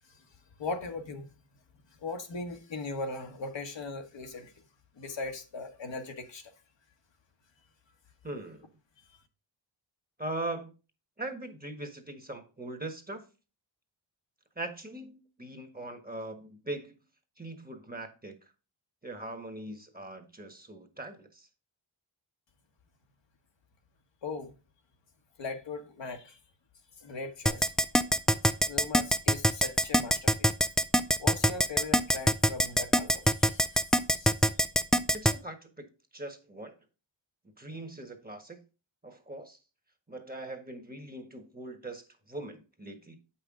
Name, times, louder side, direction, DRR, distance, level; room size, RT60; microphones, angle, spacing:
voice 1, 0.6-1.3 2.0-4.5 4.9-6.5 24.2-24.5 25.4-26.4 27.0-27.7 28.7-30.5 31.2-33.8 34.1-34.3, left 3 dB, 65° left, 1.3 m, -39 dB
voice 2, 8.2-8.7 10.2-10.7 11.2-13.2 14.5-17.0 17.4-18.3 19.0-21.5 35.1-35.9 36.1-36.7 37.6-38.6 39.0-39.6 40.1-43.2, right 2 dB, 20° right, 1.4 m, -41 dB
Keyboard (musical), 27.5-35.3, equal, ahead, 0.3 m, -23 dB
7.8 x 5.8 x 3.7 m
cardioid pair, 70°, 48 cm